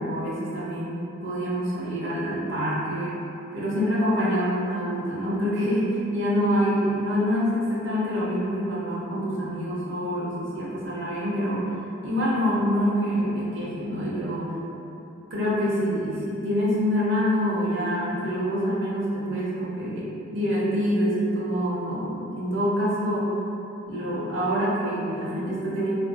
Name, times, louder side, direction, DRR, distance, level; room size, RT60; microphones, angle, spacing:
voice 1, 0.0-3.2 3.5-5.9 6.1-11.7 12.0-14.6 15.3-23.3 23.8-25.9, equal, 60° right, -7 dB, 0.6 m, -26 dB
2.5 x 2.2 x 2.5 m, 2.8 s
head